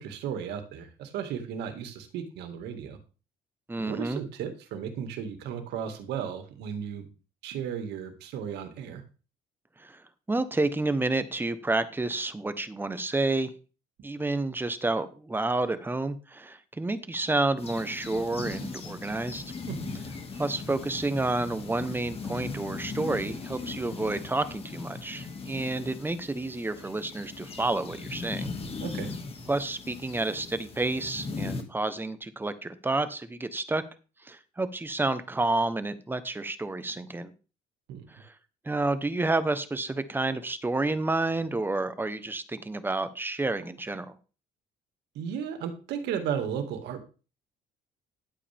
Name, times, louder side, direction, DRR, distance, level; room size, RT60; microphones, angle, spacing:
voice 1, 0.0-3.0 3.8-7.1 7.4-9.0 19.7-20.0 28.8-29.1 37.9-38.1 45.1-47.0, right 8 dB, 85° right, 6 dB, 2.1 m, -35 dB
voice 2, 3.7-4.2 9.8-10.0 10.3-13.5 14.0-19.4 20.4-28.5 29.5-33.8 34.2-37.3 38.1-38.3 38.6-44.2, right 2 dB, 10° right, 12 dB, 1.0 m, -30 dB
sound 1, 17.6-31.6, left 4 dB, 35° left, 2.1 m, -39 dB
11.5 x 8.3 x 3.5 m, 0.34 s
cardioid pair, 110°, 17 cm